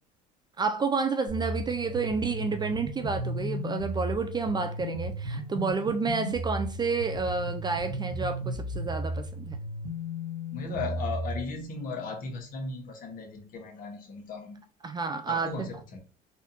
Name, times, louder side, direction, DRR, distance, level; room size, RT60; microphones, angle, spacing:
voice 1, 0.6-9.6 14.8-15.7, right 4 dB, 25° right, 0.4 m, -30 dB
sound 1, 1.3-11.4, equal, 90° right, 1.1 m, -35 dB
voice 2, 10.5-14.6 15.3-16.0, left 3 dB, 50° left, 1.3 m, -36 dB
4.2 x 2.5 x 2.9 m
supercardioid pair, 95°, 19 cm